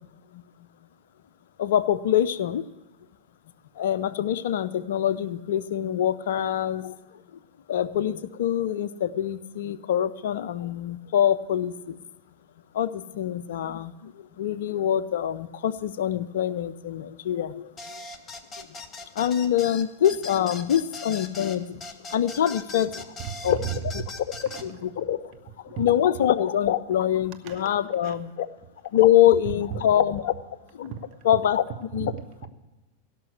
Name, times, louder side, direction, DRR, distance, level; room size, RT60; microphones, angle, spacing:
voice 1, 1.6-2.6 3.8-7.0 7.7-12.0 12.7-14.1 14.4-17.7 19.2-21.8 22.1-23.0 23.4-23.6 24.6-25.2 25.8-28.5 28.9-30.3 30.8-30.9 31.3-31.6 31.9-32.1, left 10 dB, 55° left, 15 dB, 0.5 m, -24 dB
sound 1, 17.8-24.7, left 3 dB, 20° left, 0.9 m, -40 dB
voice 2, 23.2-24.0 24.4-25.1 25.7-26.3 27.4-27.7 28.0-28.2 29.4-29.8 30.8-31.1 32.1-32.5, right 8 dB, 40° right, 5 dB, 1.2 m, -36 dB
17.0 x 6.1 x 8.3 m, 1.1 s
figure-of-eight pair, 90°, 0 cm